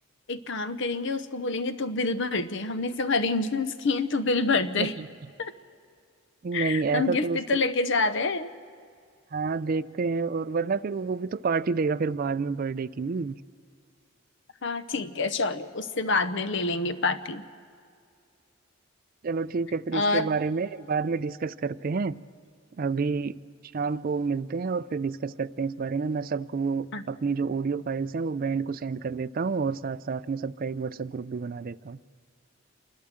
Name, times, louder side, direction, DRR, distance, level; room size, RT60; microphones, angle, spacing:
voice 1, 0.3-4.9 5.4-5.5 6.5-8.5 14.6-17.4 19.9-20.3 26.9-27.0, left 3 dB, 60° left, 0.8 m, -27 dB
voice 2, 6.4-7.6 9.3-13.4 19.2-22.2 22.8-23.4 23.7-32.0, right 4 dB, 45° right, 0.4 m, -29 dB
28.0 x 12.0 x 7.6 m
head